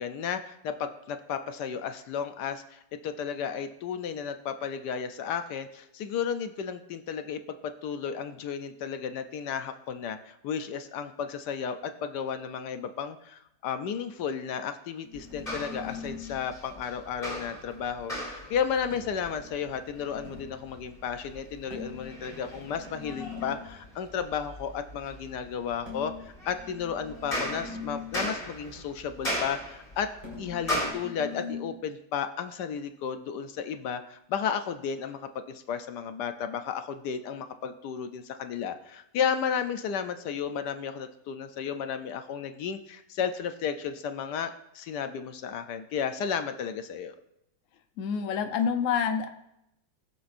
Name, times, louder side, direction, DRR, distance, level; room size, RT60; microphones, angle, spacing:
voice 1, 0.0-30.1 30.4-35.2 35.5-47.1, left 7 dB, 75° left, 9 dB, 1.2 m, -33 dB
sound 1, 15.0-16.4 18.9-20.6 21.7-23.7 25.9-28.3 30.2-31.7, left 5 dB, 30° right, 4.9 m, -42 dB
sound 2, 15.1-30.9, equal, 30° left, 3.8 m, -38 dB
voice 2, 48.0-49.3, left 7 dB, 55° left, 6 dB, 1.0 m, -27 dB
20.5 x 7.1 x 2.6 m, 0.81 s
omnidirectional pair, 1.9 m